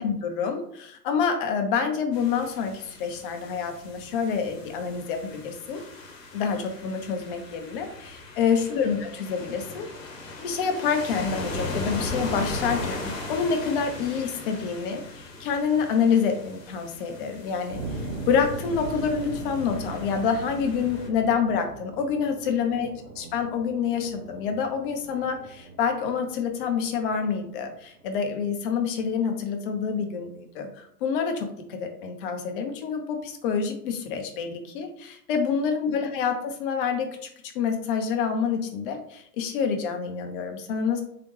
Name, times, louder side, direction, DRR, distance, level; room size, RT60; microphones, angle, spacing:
voice 1, 0.0-5.8 6.3-9.9 10.4-17.8 18.3-37.2 37.5-41.0, left 6 dB, 35° left, 5 dB, 0.7 m, -27 dB
sound 1, 2.1-21.1, left 2 dB, 55° left, 1.1 m, -38 dB
sound 2, 17.7-28.5, right 3 dB, 70° right, 0.9 m, -40 dB
3.8 x 3.3 x 3.1 m, 0.68 s
figure-of-eight pair, 100°, 49 cm